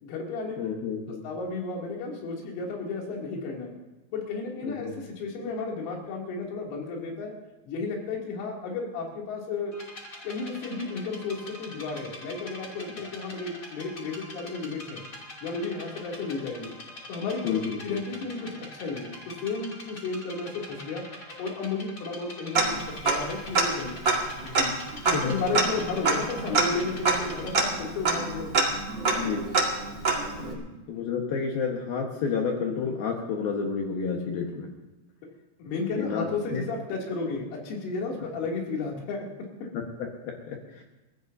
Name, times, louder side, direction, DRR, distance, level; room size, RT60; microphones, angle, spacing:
voice 1, 0.0-0.6 1.2-3.7 4.1-7.4 7.7-9.8 10.2-15.0 15.4-16.7 17.1-17.6 17.8-21.1 21.4-24.7 25.1-28.7 30.4-30.6 35.6-39.3, left 4 dB, 90° left, -2 dB, 5.5 m, -33 dB
voice 2, 0.6-1.2 4.6-4.9 17.4-17.8 25.1-25.4 29.1-29.4 30.9-34.7 35.9-36.2 36.5-36.6 39.7-40.8, left 6 dB, 70° left, 0 dB, 2.4 m, -30 dB
sound 1, 9.7-27.6, left 1 dB, 30° left, 2.0 m, -44 dB
Tick-tock, 22.5-23.3 23.5-23.6 24.0-30.5, right 3 dB, 80° right, 1.0 m, -26 dB
30.0 x 14.5 x 2.7 m, 1.1 s
omnidirectional pair, 6.0 m